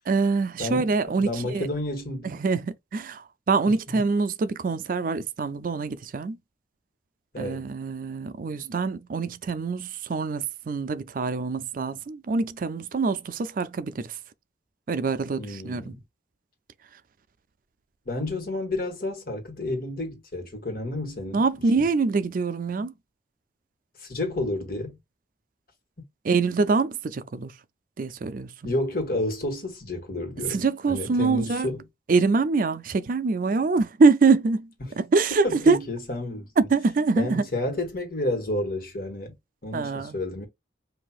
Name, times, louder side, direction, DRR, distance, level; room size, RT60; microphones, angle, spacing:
voice 1, 0.1-1.7 2.2-6.4 7.4-14.1 14.9-15.9 21.3-22.9 26.2-27.5 28.0-28.5 30.5-31.7 32.1-34.7 35.0-35.8 36.6-37.4 39.7-40.1, right 4 dB, 50° right, 0.4 m, -24 dB
voice 2, 0.6-0.9 1.2-2.4 3.9-4.0 7.3-7.7 15.4-16.0 18.0-21.4 21.7-21.9 24.0-25.0 28.6-31.8 34.8-34.9 35.4-36.7 37.2-39.4 39.6-40.5, left 2 dB, 55° left, 1.6 m, -30 dB
5.7 x 2.7 x 2.3 m
head